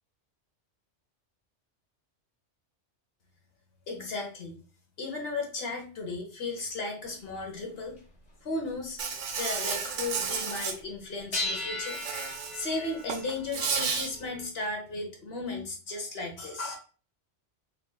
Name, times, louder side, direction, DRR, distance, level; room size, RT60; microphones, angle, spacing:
voice 1, 3.9-4.6 5.0-7.9 8.4-9.0 9.4-12.0 12.5-16.8, left 3 dB, 55° left, 2 dB, 1.2 m, -35 dB
sound 1, 7.0-7.1 8.0-8.1 8.5-8.6 9.1-9.4 11.3-14.5, left 2 dB, 35° left, 1.4 m, -37 dB
Insect, 9.0-10.7 11.9-12.7 13.0-14.1, right 6 dB, 85° right, 1.0 m, -32 dB
4.0 x 3.5 x 2.3 m, 0.37 s
omnidirectional pair, 1.2 m